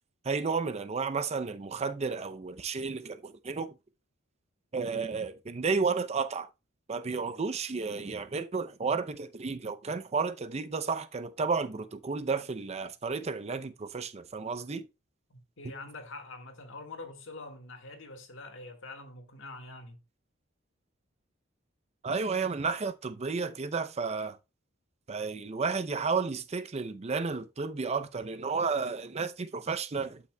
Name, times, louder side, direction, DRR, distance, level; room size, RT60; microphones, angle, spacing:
voice 1, 0.2-3.7 4.7-6.5 6.9-14.9 22.0-24.4 25.1-30.2, right 4 dB, 35° right, 0.5 m, -32 dB
voice 2, 15.3-20.0, left 3 dB, 70° left, 1.6 m, -45 dB
12.0 x 5.7 x 2.2 m
head